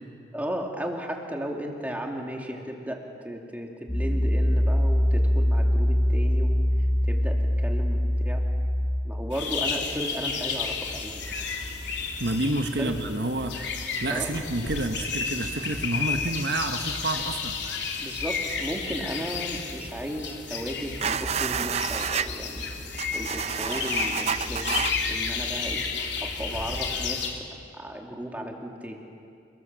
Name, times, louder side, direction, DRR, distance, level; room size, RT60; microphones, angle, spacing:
voice 1, 0.3-6.6 7.0-8.4 9.0-11.4 12.8-12.9 14.1-14.4 18.0-22.6 23.1-25.9 26.2-27.5 27.7-29.0, equal, 10° right, 1 dB, 2.4 m, -35 dB
Piano, 3.9-9.0, equal, 15° left, 5.2 m, -23 dB
sound 1, 9.3-27.3, left 5 dB, 80° left, 3.1 m, -32 dB
voice 2, 12.2-17.6, right 2 dB, 70° right, 6 dB, 1.4 m, -29 dB
sound 2, 21.0-22.3 22.9-24.9, right 7 dB, 35° right, 0.6 m, -29 dB
29.0 x 19.0 x 7.6 m, 2.5 s
head